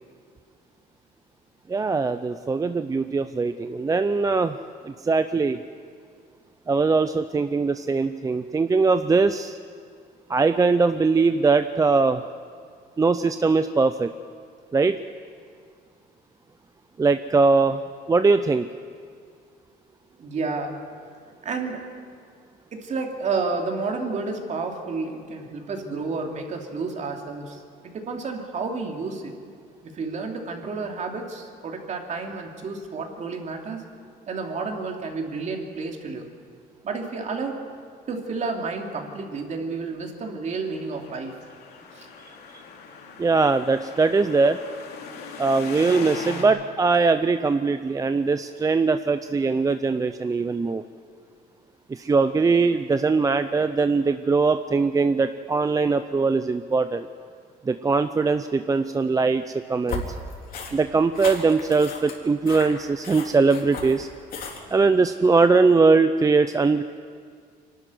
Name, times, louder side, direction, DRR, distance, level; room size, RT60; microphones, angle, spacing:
voice 1, 1.7-4.6 4.8-5.6 6.7-9.6 10.3-12.2 13.0-14.1 14.7-15.0 17.0-17.8 18.1-18.7 43.2-44.6 45.4-50.8 51.9-57.1 57.7-60.0 60.7-64.1 64.7-66.8, right 4 dB, 20° right, 10 dB, 0.5 m, -21 dB
voice 2, 20.2-20.7 21.4-21.8 22.7-29.3 29.8-33.8 34.3-36.3 36.8-37.6 38.1-41.4 41.9-42.1, right 4 dB, 45° right, 2 dB, 2.8 m, -31 dB
sound 1, 40.6-46.4, left 5 dB, 75° left, 3.1 m, -39 dB
sound 2, 59.9-64.8, left 4 dB, 55° left, 3.5 m, -36 dB
24.5 x 12.5 x 9.6 m, 2.1 s
cardioid pair, 110°, 17 cm